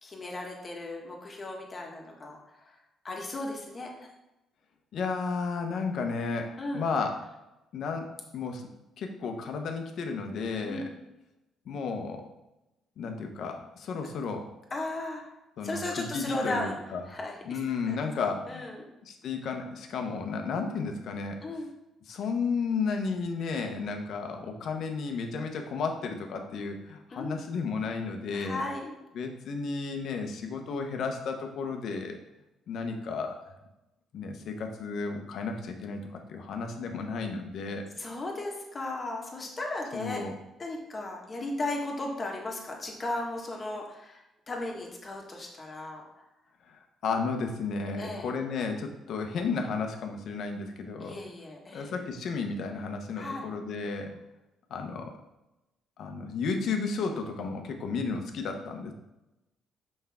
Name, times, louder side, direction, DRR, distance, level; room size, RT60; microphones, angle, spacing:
voice 1, 0.0-2.4 3.0-4.1 6.6-6.9 10.7-10.9 14.7-15.2 15.6-16.8 17.1-17.6 17.9-18.0 18.5-18.9 21.4-21.7 27.1-27.4 28.3-28.9 38.0-40.2 40.6-44.2 44.5-46.0 48.0-48.3 51.0-51.9 53.2-53.5, left 2 dB, 30° left, 0 dB, 1.6 m, -35 dB
voice 2, 4.9-7.2 7.7-8.1 8.3-8.7 9.0-10.9 11.7-12.3 13.0-14.4 15.6-17.0 17.4-18.6 19.1-21.4 22.1-28.6 29.1-32.2 32.7-33.4 34.1-37.9 39.9-40.3 46.7-46.8 47.0-51.2 51.7-54.2 54.7-55.1 56.0-58.9, left 4 dB, 65° left, 4 dB, 0.9 m, -33 dB
5.8 x 5.4 x 3.6 m, 0.95 s
cardioid pair, 85°, 0 cm